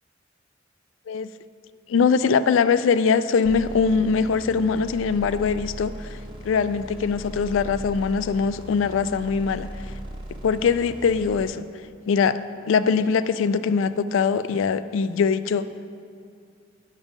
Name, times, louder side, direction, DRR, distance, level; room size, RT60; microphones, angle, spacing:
voice 1, 1.9-6.2 6.4-9.7 10.4-11.6 12.1-12.4 12.7-15.7, left 5 dB, 80° left, 14 dB, 0.3 m, -22 dB
sound 1, 3.4-11.4, right 1 dB, 25° right, 1.3 m, -38 dB
10.5 x 5.3 x 5.2 m, 2.4 s
head